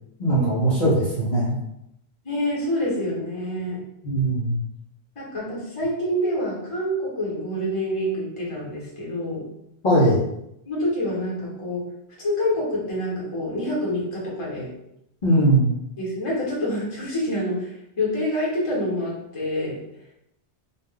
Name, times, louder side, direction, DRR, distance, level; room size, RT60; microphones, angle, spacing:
voice 1, 0.2-1.5 4.0-4.6 9.8-10.2 15.2-15.8, right 1 dB, 55° left, -7 dB, 0.9 m, -20 dB
voice 2, 2.2-3.8 5.2-9.4 10.6-11.8 12.2-14.7 16.0-19.8, left 1 dB, 30° left, -5 dB, 1.0 m, -27 dB
2.4 x 2.1 x 3.6 m, 0.81 s
omnidirectional pair, 1.1 m